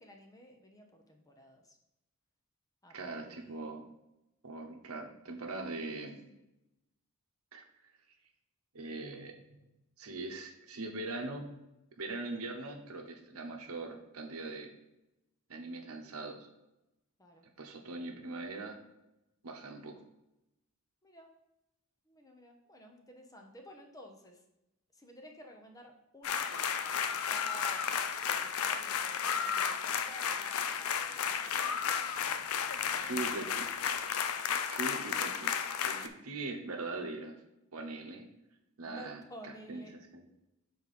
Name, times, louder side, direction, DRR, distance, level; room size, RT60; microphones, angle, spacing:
voice 1, 0.0-1.8 2.8-3.7 17.2-17.5 21.0-21.3 22.1-24.4 24.9-28.0 28.3-32.1 32.8-33.4 34.4-34.6 35.8-36.0 38.0-38.2 38.8-39.9, equal, 15° left, 2 dB, 0.8 m, -54 dB
voice 2, 2.9-3.9 4.4-6.2 7.5-7.6 8.7-9.6 10.0-11.5 12.0-14.7 15.5-16.5 17.6-18.8 19.4-19.9 33.0-33.7 34.7-35.5 35.8-37.4 37.7-38.3 38.8-39.8 40.1-40.2, right 2 dB, 70° right, 3 dB, 1.0 m, -41 dB
sound 1, 26.2-36.1, left 7 dB, 70° left, 0.5 m, -33 dB
6.6 x 4.2 x 4.2 m, 0.91 s
head